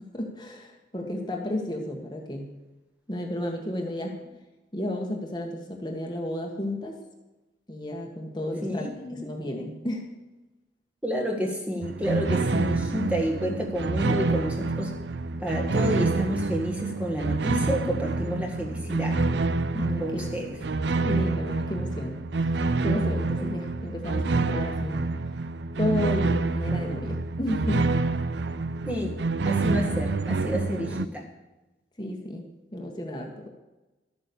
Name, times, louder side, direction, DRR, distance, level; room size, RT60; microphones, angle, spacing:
voice 1, 0.1-2.5 3.1-4.2 4.7-7.0 7.7-8.8 9.1-10.1 19.7-20.7 21.0-22.2 22.4-22.5 22.8-25.0 25.8-27.9 30.8-31.0 32.0-32.4 32.7-33.5, left 1 dB, 25° left, 1 dB, 1.5 m, -32 dB
voice 2, 8.6-9.3 11.0-14.9 15.4-19.1 20.0-20.5 28.9-29.2 29.4-31.2, equal, 10° right, 0 dB, 1.7 m, -30 dB
sound 1, 11.8-31.1, right 3 dB, 75° right, 0.5 m, -27 dB
12.5 x 9.0 x 6.9 m, 1.1 s
head